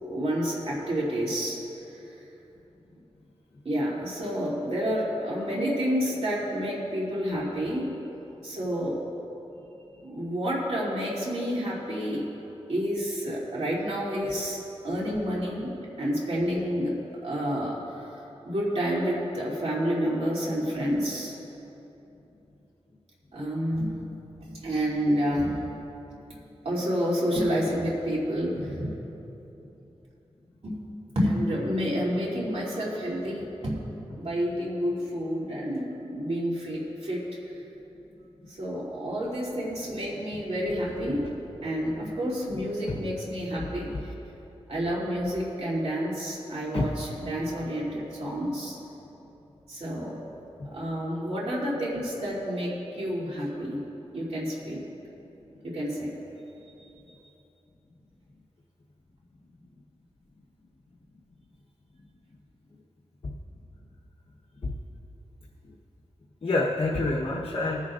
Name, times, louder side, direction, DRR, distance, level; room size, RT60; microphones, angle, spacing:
voice 1, 0.0-1.6 1.9-2.2 3.6-8.0 8.4-9.1 10.0-12.3 12.7-17.0 17.2-21.3 23.3-24.0 24.4-25.6 26.6-28.9 30.6-30.8 31.1-33.8 34.2-37.3 38.5-41.3 41.6-43.9 44.7-48.8 49.7-50.2 50.7-53.8 54.1-54.8 55.6-56.1, equal, 65° right, -6 dB, 2.9 m, -29 dB
voice 2, 43.6-44.0 46.7-46.9 64.6-64.7 66.4-67.8, left 2 dB, 60° left, -5 dB, 1.1 m, -27 dB
21.0 x 10.5 x 2.5 m, 3.0 s
wide cardioid pair, 95°, 11 cm